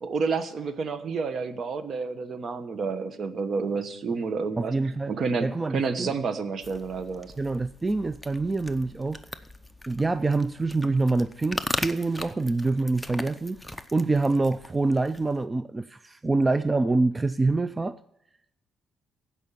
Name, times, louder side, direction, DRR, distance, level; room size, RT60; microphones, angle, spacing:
voice 1, 0.0-4.7 5.1-7.3, right 4 dB, 55° right, 1.1 m, -30 dB
voice 2, 4.6-5.1 5.4-6.1 7.4-9.2 9.9-13.6 13.9-18.0, right 3 dB, 20° right, 0.3 m, -26 dB
sound 1, 6.6-15.4, left 1 dB, 5° left, 0.7 m, -39 dB
15.5 x 5.4 x 7.2 m
cardioid pair, 90°, 0 cm